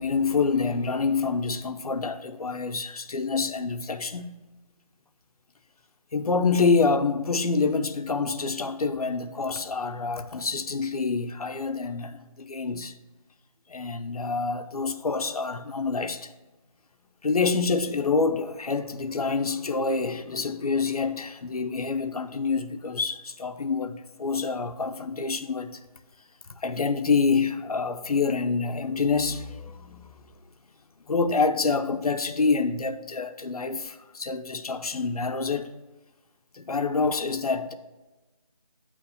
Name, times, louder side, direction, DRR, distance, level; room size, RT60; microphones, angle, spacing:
voice 1, 0.0-4.3 6.1-12.9 13.7-16.3 17.2-25.8 26.5-30.1 31.1-35.7 36.5-37.7, left 4 dB, 85° left, 0.6 m, -27 dB
7.9 x 3.1 x 5.6 m
figure-of-eight pair, 170°, 18 cm